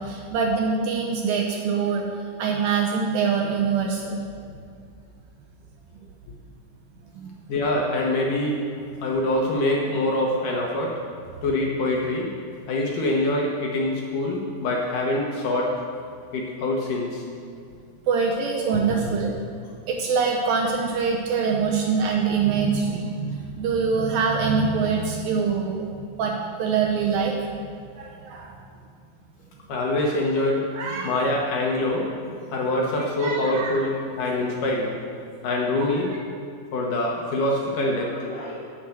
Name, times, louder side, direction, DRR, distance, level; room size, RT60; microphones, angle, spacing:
voice 1, 0.0-2.1 2.4-4.2 7.2-7.3 18.1-19.3 19.9-25.9 26.2-27.5 28.0-28.6 30.8-31.1 33.2-33.9, right 5 dB, 75° right, 0 dB, 2.3 m, -24 dB
voice 2, 7.5-8.5 9.0-10.9 11.4-12.3 12.7-15.7 16.3-17.2 29.7-30.7 31.0-32.1 32.5-35.0 35.4-36.1 36.7-38.7, left 1 dB, 65° left, -2 dB, 2.3 m, -24 dB
11.0 x 7.1 x 7.7 m, 2.3 s
omnidirectional pair, 4.8 m